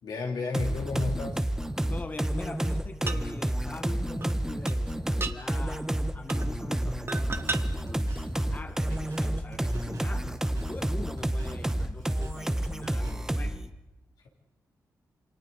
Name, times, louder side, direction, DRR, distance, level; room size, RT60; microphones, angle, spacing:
voice 1, 0.0-1.4, left 4 dB, 85° left, 0 dB, 3.3 m, -32 dB
sound 1, 0.5-13.7, right 1 dB, 10° right, 1.0 m, -30 dB
voice 2, 1.9-13.6, left 2 dB, 25° left, 9 dB, 0.9 m, -43 dB
sound 2, 3.1-3.2 4.2-4.3 4.7-4.8 5.2-5.4 6.3-6.5 7.1-7.6 8.5-8.6, right 3 dB, 35° right, 1.1 m, -33 dB
Drum kit, 7.4-13.3, right 3 dB, 75° right, 5.4 m, -47 dB
27.5 x 24.0 x 4.0 m, 1.0 s
cardioid pair, 80°, 7 cm